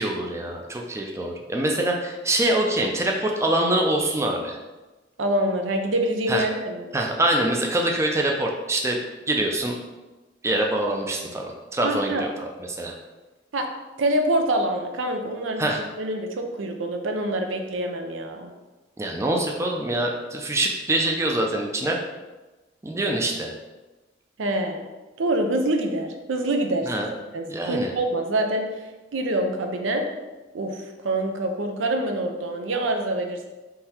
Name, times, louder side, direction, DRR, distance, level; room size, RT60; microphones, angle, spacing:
voice 1, 0.0-4.6 6.3-6.4 6.9-9.0 9.3-9.7 10.4-12.9 15.6-15.9 19.0-22.0 22.8-23.5 26.9-27.1 27.5-27.9, right 1 dB, 15° right, 0 dB, 0.4 m, -24 dB
voice 2, 5.2-6.9 11.8-12.2 13.5-13.7 14.0-15.6 16.0-18.5 24.4-24.8 25.2-26.9 27.3-28.7 29.1-30.1 30.5-33.5, right 1 dB, 85° right, 4 dB, 0.6 m, -25 dB
3.8 x 2.7 x 4.3 m, 1.1 s
head